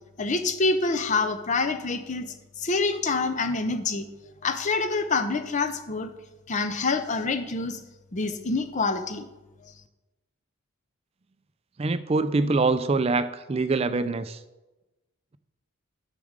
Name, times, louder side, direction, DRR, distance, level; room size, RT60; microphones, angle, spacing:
voice 1, 0.2-4.1 4.4-6.1 6.5-7.8 8.1-9.3, left 3 dB, 35° left, 9 dB, 0.6 m, -26 dB
voice 2, 11.8-14.4, right 3 dB, 25° right, 12 dB, 0.3 m, -24 dB
6.9 x 5.0 x 6.5 m, 1.1 s
head